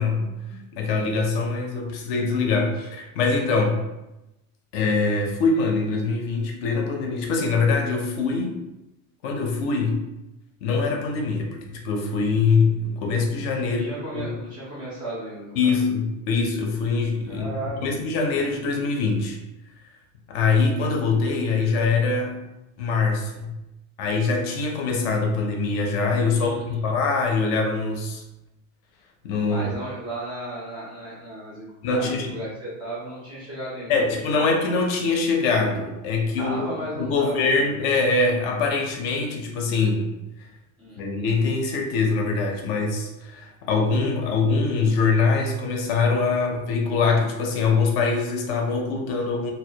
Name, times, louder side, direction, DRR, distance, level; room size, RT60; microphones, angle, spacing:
voice 1, 0.0-3.8 4.7-8.6 9.2-10.0 10.6-13.9 14.1-14.3 15.6-17.5 17.8-19.4 20.3-22.3 22.8-23.5 24.0-28.2 29.2-29.7 31.8-32.3 33.9-36.6 37.0-40.1 41.0-49.5, left 4 dB, 50° left, 2 dB, 0.5 m, -23 dB
voice 2, 13.6-15.8 17.3-18.0 26.3-26.9 29.4-34.5 36.4-37.6 40.8-41.0, right 1 dB, 15° right, -8 dB, 0.3 m, -35 dB
2.1 x 2.1 x 2.7 m, 0.94 s
supercardioid pair, 165°, 40 cm